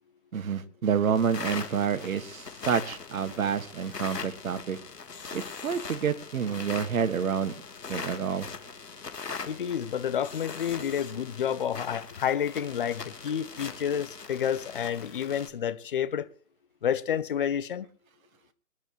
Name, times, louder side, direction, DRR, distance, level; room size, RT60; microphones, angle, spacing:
voice 1, 0.3-4.8 5.3-7.5 7.9-8.5, right 7 dB, 60° right, 1.8 m, -28 dB
sound 1, 1.1-15.5, left 5 dB, 85° left, 3.1 m, -41 dB
voice 2, 9.5-16.3 16.8-17.9, left 9 dB, 35° left, 0.8 m, -29 dB
25.0 x 11.0 x 3.1 m
hypercardioid pair, 160°, 47 cm